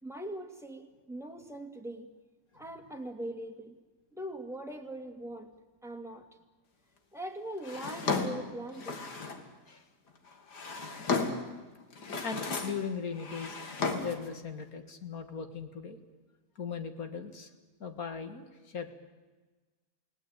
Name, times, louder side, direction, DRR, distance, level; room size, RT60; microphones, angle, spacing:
voice 1, 0.0-2.1 2.5-3.8 4.1-5.5 5.8-6.3 7.1-9.0, right 1 dB, ahead, 3 dB, 2.2 m, -41 dB
Drawer open or close, 7.6-9.5 10.3-11.5 11.9-12.9 13.1-14.3, left 4 dB, 85° left, 2.7 m, -34 dB
voice 2, 12.2-13.6 13.9-16.0 16.6-17.5 17.8-18.9, left 6 dB, 60° left, 7 dB, 2.2 m, -38 dB
29.5 x 18.5 x 9.0 m, 1.3 s
omnidirectional pair, 1.7 m